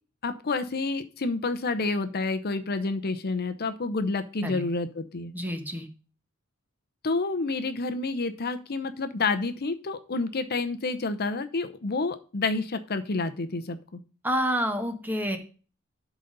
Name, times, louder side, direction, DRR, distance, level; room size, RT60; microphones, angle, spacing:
voice 1, 0.2-5.3 7.0-14.0, left 3 dB, 45° left, 11 dB, 0.7 m, -29 dB
voice 2, 5.3-5.9 14.2-15.4, equal, 10° right, 6 dB, 1.2 m, -28 dB
11.5 x 4.1 x 5.3 m, 0.37 s
head